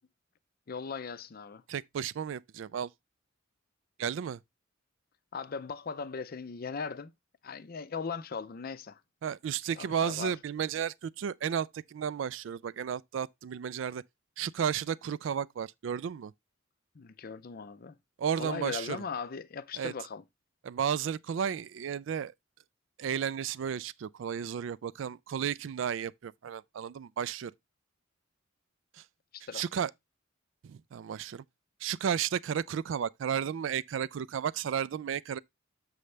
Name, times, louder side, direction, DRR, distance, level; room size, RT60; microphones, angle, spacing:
voice 1, 0.7-1.6 5.3-7.1 7.4-9.0 9.7-10.4 16.9-18.0 18.4-20.2 29.3-29.6, left 5 dB, 50° left, 0.5 m, -38 dB
voice 2, 1.7-2.9 4.0-4.4 9.2-14.0 14.4-16.3 18.2-19.0 19.8-19.9 20.6-22.3 23.0-27.5 29.5-29.9 30.6-31.4 31.8-35.4, right 8 dB, 70° right, 0.3 m, -33 dB
6.8 x 6.3 x 3.2 m
head